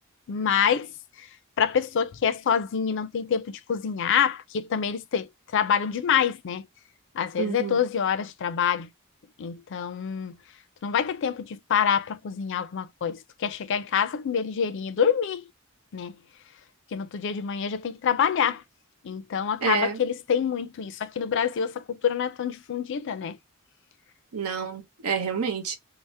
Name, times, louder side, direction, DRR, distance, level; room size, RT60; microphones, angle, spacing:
voice 1, 0.3-0.9 1.2-1.3 1.6-6.7 7.1-8.9 9.4-10.4 10.8-15.5 15.9-16.2 16.9-18.6 19.0-23.4, left 7 dB, 55° left, 0.4 m, -26 dB
voice 2, 7.4-7.8 19.6-20.0 24.3-25.8, right 6 dB, 85° right, 0.8 m, -28 dB
2.7 x 2.0 x 3.3 m
head